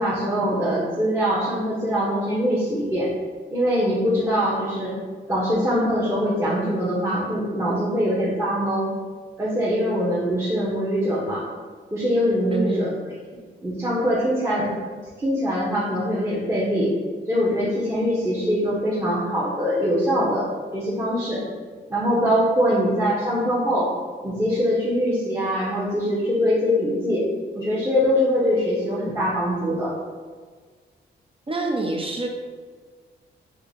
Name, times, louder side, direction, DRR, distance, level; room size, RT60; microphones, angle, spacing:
voice 1, 0.0-3.1 3.5-4.9 5.3-8.9 9.4-11.5 11.9-12.9 13.6-14.7 15.2-16.9 17.3-20.5 20.7-21.4 21.9-23.9 24.2-27.3 27.5-29.9, equal, 15° right, -8 dB, 0.8 m, -23 dB
voice 2, 12.5-13.0 31.5-32.3, right 2 dB, 30° right, 2 dB, 0.4 m, -26 dB
2.7 x 2.6 x 4.2 m, 1.5 s
cardioid pair, 75°, 19 cm